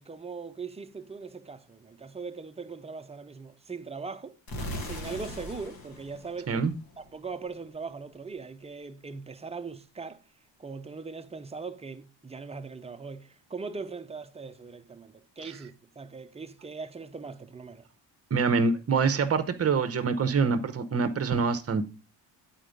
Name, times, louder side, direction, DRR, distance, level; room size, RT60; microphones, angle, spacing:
voice 1, 0.0-4.4 4.8-6.7 7.0-10.2 10.6-17.9, right 4 dB, 15° right, 0.4 m, -40 dB
sound 1, 4.5-7.3, left 1 dB, 50° left, 1.5 m, -39 dB
voice 2, 18.3-21.9, right 5 dB, 30° right, 0.8 m, -25 dB
9.2 x 4.5 x 5.1 m
cardioid pair, 145°, 46 cm